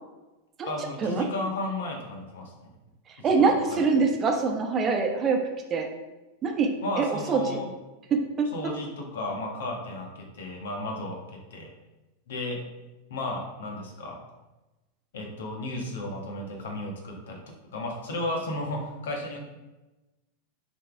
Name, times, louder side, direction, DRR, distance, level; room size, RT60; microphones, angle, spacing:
voice 1, 0.6-2.7 3.2-4.0 6.8-7.7 8.5-11.7 12.3-12.6 13.1-14.2 15.1-17.4 17.7-19.6, left 2 dB, 60° left, 1 dB, 1.6 m, -34 dB
voice 2, 3.2-5.4 5.7-5.9 6.4-7.6 8.1-8.5, right 4 dB, 25° right, 3 dB, 1.1 m, -24 dB
7.4 x 5.4 x 3.4 m, 1.1 s
figure-of-eight pair, 90°, 0 cm